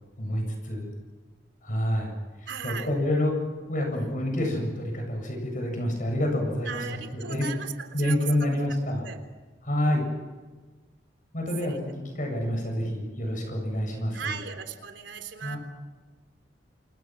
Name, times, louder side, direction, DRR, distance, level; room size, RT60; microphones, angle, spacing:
voice 1, 0.2-0.9 1.6-2.1 2.4-3.3 3.7-7.5 7.9-9.1 9.6-10.1 11.3-14.4 15.4-15.6, left 1 dB, 45° left, 3 dB, 7.7 m, -28 dB
voice 2, 2.5-2.9 6.7-8.6 9.1-9.2 11.6-11.8 14.1-15.6, right 6 dB, 80° right, 8 dB, 3.4 m, -37 dB
28.5 x 28.0 x 6.2 m, 1.3 s
head